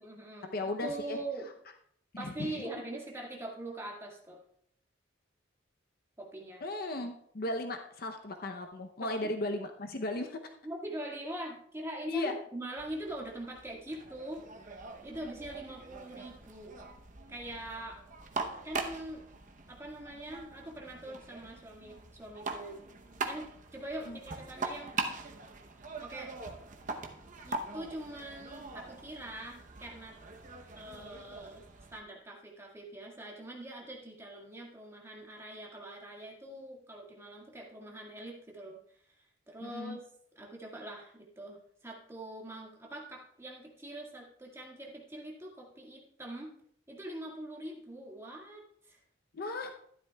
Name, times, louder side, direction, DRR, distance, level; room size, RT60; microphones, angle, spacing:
voice 1, 0.0-1.5 2.2-4.4 6.2-6.6 9.0-9.2 10.6-14.4 15.0-16.7 17.3-18.0 18.6-19.2 19.7-22.9 23.2-25.0 26.0-26.3 27.5-30.1 30.7-31.6 31.9-38.8 39.1-40.0 40.4-46.5 46.9-49.0, right 1 dB, 15° right, -2 dB, 1.8 m, -43 dB
voice 2, 0.5-1.2 2.1-2.6 6.6-10.5 12.1-12.4 24.1-24.2 39.6-40.0 49.3-49.7, left 2 dB, 50° left, 5 dB, 0.7 m, -36 dB
sound 1, 12.8-32.0, right 3 dB, 40° right, 0.8 m, -42 dB
12.5 x 11.0 x 2.3 m, 0.66 s
head